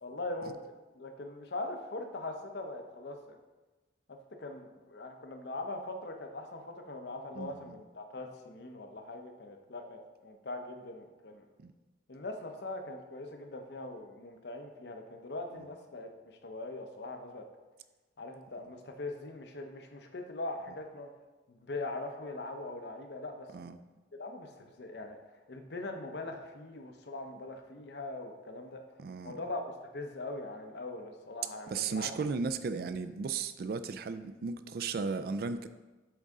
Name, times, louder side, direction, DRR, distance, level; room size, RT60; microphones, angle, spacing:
voice 1, 0.0-0.6 0.9-3.4 4.1-11.5 12.1-17.5 18.2-21.1 21.5-23.7 24.2-28.8 29.2-32.1, left 2 dB, 60° left, 5 dB, 0.7 m, -41 dB
voice 2, 7.4-7.7 11.6-11.7 23.5-23.8 29.0-29.4 31.7-35.7, right 5 dB, 50° right, 11 dB, 0.3 m, -35 dB
7.9 x 3.8 x 3.6 m, 1.2 s
head